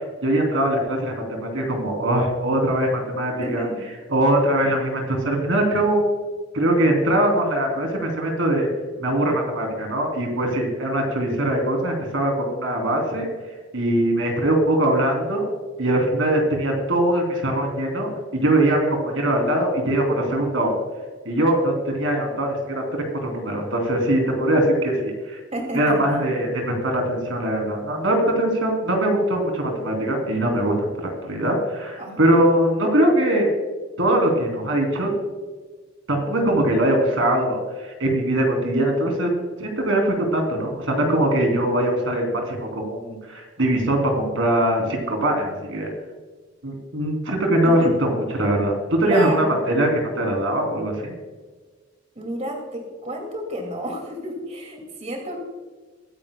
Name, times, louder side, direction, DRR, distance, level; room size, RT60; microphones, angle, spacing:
voice 1, 0.2-6.0 6.5-8.7 9.0-13.3 13.7-15.5 15.8-20.7 21.2-25.4 25.7-33.5 34.0-35.1 36.1-45.9 46.6-51.1, right 1 dB, 80° right, 2 dB, 3.1 m, -22 dB
voice 2, 3.4-3.8 25.5-26.0 32.0-32.4 47.6-47.9 49.0-49.4 52.2-55.5, right 1 dB, 35° right, 1 dB, 2.4 m, -31 dB
23.0 x 10.0 x 2.3 m, 1.4 s
head